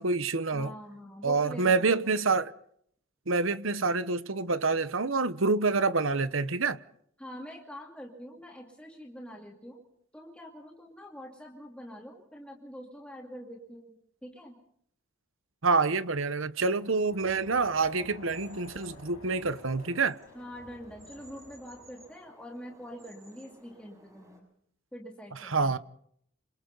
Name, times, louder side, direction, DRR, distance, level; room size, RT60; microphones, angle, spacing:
voice 1, 0.0-0.7 1.2-2.5 3.3-6.8 15.6-20.2 25.5-25.8, right 4 dB, 70° right, 1.1 m, -27 dB
voice 2, 0.5-2.2 7.2-9.8 10.1-14.5 20.3-24.5 24.9-25.8, equal, 5° left, 2.7 m, -45 dB
sound 1, 16.6-24.4, right 1 dB, 15° right, 6.6 m, -58 dB
Crowd, 17.0-22.1, left 2 dB, 90° left, 5.8 m, -51 dB
28.0 x 27.0 x 4.1 m
head